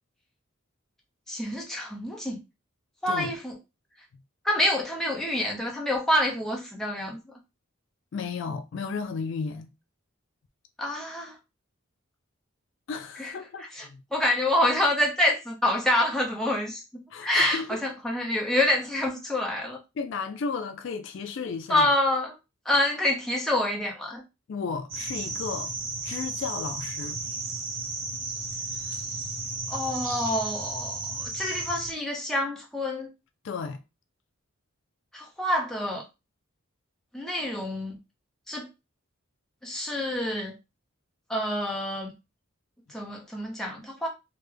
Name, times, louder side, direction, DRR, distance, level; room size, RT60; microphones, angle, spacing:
voice 1, 1.3-2.4 3.0-3.6 4.4-7.2 10.8-11.4 13.2-13.3 13.6-13.9 14.1-19.8 21.7-22.3 22.7-24.2 29.7-33.1 35.1-36.0 37.1-38.0 38.5-38.7 39.6-40.5 41.3-42.1 42.9-44.1, left 1 dB, ahead, 0.7 m, -27 dB
voice 2, 8.1-9.7 12.9-14.0 17.1-17.8 20.0-21.9 24.5-25.7 26.0-27.2 33.4-33.8, left 5 dB, 60° left, 0.3 m, -34 dB
sound 1, 24.9-31.9, right 3 dB, 65° right, 0.9 m, -34 dB
3.3 x 2.1 x 3.2 m
head